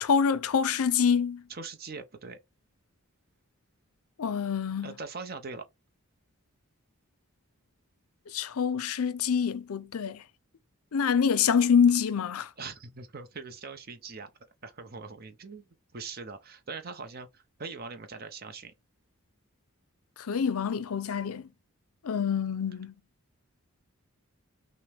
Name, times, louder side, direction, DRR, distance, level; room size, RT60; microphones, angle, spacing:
voice 1, 0.0-1.4 4.2-4.9 8.3-10.2 10.9-12.5 20.3-21.5 22.0-22.9, left 6 dB, 75° left, 0.5 m, -26 dB
voice 2, 1.5-2.4 4.8-5.6 12.6-14.3 14.6-15.7 15.9-18.7, right 4 dB, 45° right, 0.7 m, -41 dB
5.9 x 2.1 x 3.4 m
head